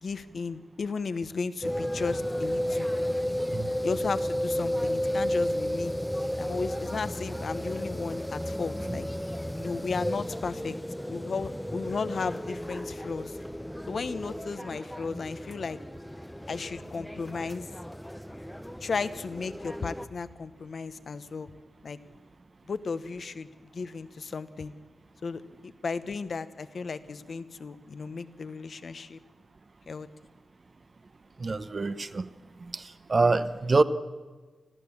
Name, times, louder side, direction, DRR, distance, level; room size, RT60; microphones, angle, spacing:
voice 1, 0.0-2.9 3.3-3.4 3.8-5.9 6.4-9.1 9.6-10.8 11.1-13.4 13.9-15.8 16.5-17.7 18.8-21.5 21.8-22.0 22.7-23.5 23.7-24.7 25.2-29.2 29.9-30.1, left 4 dB, 60° left, 12 dB, 1.0 m, -34 dB
sound 1, 1.6-20.1, equal, 5° left, 0.6 m, -33 dB
voice 2, 31.4-32.3 32.7-33.8, right 3 dB, 40° right, 13 dB, 0.9 m, -25 dB
26.5 x 15.5 x 7.2 m, 1.3 s
wide cardioid pair, 90°, 0 cm